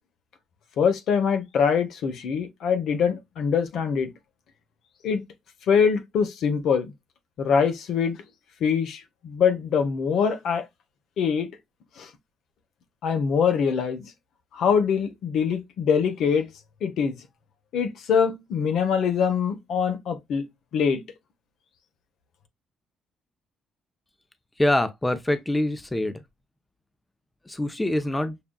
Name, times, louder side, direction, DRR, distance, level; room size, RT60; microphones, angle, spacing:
voice 1, 0.8-4.1 5.0-5.2 5.7-6.9 7.4-8.2 8.6-10.6 11.2-11.5 12.0-12.1 13.0-14.0 14.5-16.5 16.8-17.2 17.7-20.4 20.7-21.0, left 6 dB, 70° left, 0.8 m, -23 dB
voice 2, 24.6-26.2 27.5-28.4, left 1 dB, 10° left, 0.6 m, -25 dB
6.9 x 2.4 x 2.2 m
cardioid pair, 95°, 0 cm